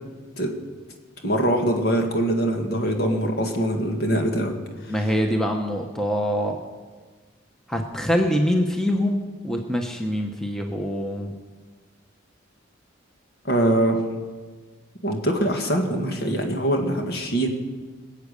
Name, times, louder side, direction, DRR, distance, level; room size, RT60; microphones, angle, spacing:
voice 1, 1.2-4.6 4.9-5.1 13.4-14.0 15.0-17.5, right 1 dB, 55° left, 3 dB, 1.9 m, -23 dB
voice 2, 4.9-6.6 7.7-11.3, equal, 5° left, 2 dB, 0.9 m, -24 dB
20.5 x 8.3 x 6.8 m, 1.4 s
head